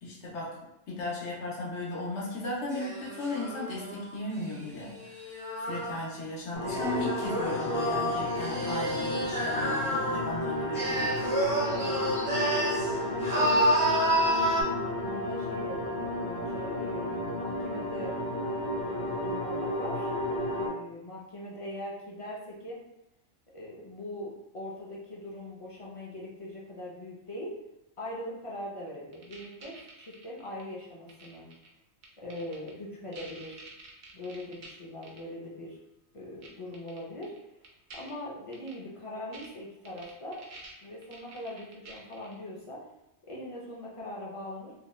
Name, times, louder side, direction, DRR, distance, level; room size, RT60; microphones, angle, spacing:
voice 1, 0.0-0.6 0.9-5.3 5.6-11.2, left 2 dB, 90° left, -4 dB, 1.1 m, -36 dB
sound 1, 2.7-6.1 6.7-10.3 10.7-12.9 13.2-14.6, right 1 dB, 40° right, 0.5 m, -29 dB
sound 2, 6.5-20.7, left 1 dB, 70° left, 1.2 m, -33 dB
voice 2, 12.9-13.8 15.0-18.1 18.8-20.1 20.6-22.8 23.5-27.5 28.0-31.5 32.2-33.6 34.1-35.8 36.1-37.3 38.0-40.4 40.8-42.8 43.3-44.7, left 1 dB, 45° left, -4 dB, 0.4 m, -41 dB
sound 3, 29.1-30.6 31.1-31.7 32.0-32.7 33.1-34.7 35.0-35.2 36.4-36.5 36.7-37.4 37.6-38.1 38.5-38.7 39.3-39.5 39.8-42.3, right 3 dB, 70° right, 0.8 m, -48 dB
2.7 x 2.1 x 3.1 m, 0.87 s
omnidirectional pair, 1.2 m